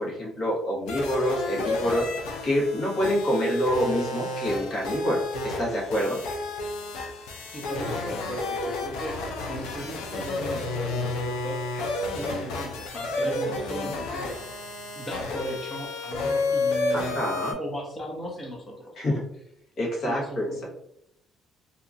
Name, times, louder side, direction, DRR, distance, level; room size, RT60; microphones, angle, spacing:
voice 1, 0.0-2.1 2.4-6.2 13.2-13.3 13.7-13.9 16.9-17.5 19.0-19.2 19.8-20.6, equal, 55° left, -4 dB, 1.3 m, -27 dB
sound 1, 0.9-17.5, left 2 dB, 90° left, 0.5 m, -31 dB
voice 2, 7.5-17.2 17.6-19.2 20.0-20.6, equal, 25° left, -1 dB, 0.9 m, -37 dB
2.8 x 2.4 x 2.5 m, 0.75 s
cardioid pair, 105°, 0 cm